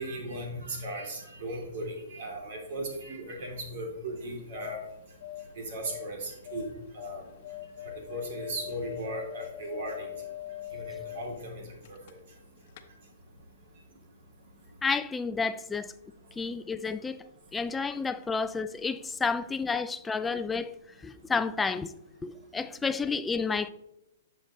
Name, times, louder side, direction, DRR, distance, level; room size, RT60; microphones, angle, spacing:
voice 1, 0.0-4.8 5.6-6.7 6.9-7.2 8.1-10.1 10.7-11.4 11.9-12.0, right 1 dB, 60° right, 3.2 m, -37 dB
sound 1, 4.2-12.4 12.7-12.8, left 14 dB, 50° left, 0.9 m, -43 dB
voice 2, 14.8-15.9 16.4-17.2 17.5-20.8 21.0-21.9 22.2-23.7, left 4 dB, 10° left, 0.4 m, -30 dB
10.5 x 6.7 x 3.2 m
hypercardioid pair, 130°, 0 cm